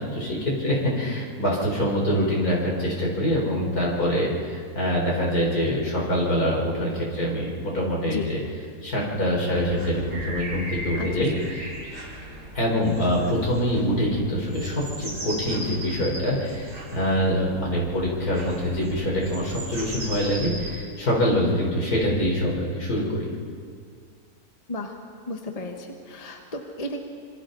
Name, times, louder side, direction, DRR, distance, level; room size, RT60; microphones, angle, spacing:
voice 1, 0.0-8.4 8.8-11.6 12.5-23.3, equal, 70° left, -3 dB, 4.8 m, -25 dB
sound 1, 9.5-20.8, right 1 dB, 80° right, 3.9 m, -37 dB
voice 2, 25.3-27.0, left 2 dB, 25° left, 3 dB, 1.4 m, -34 dB
26.5 x 26.0 x 4.0 m, 2.2 s
omnidirectional pair, 1.6 m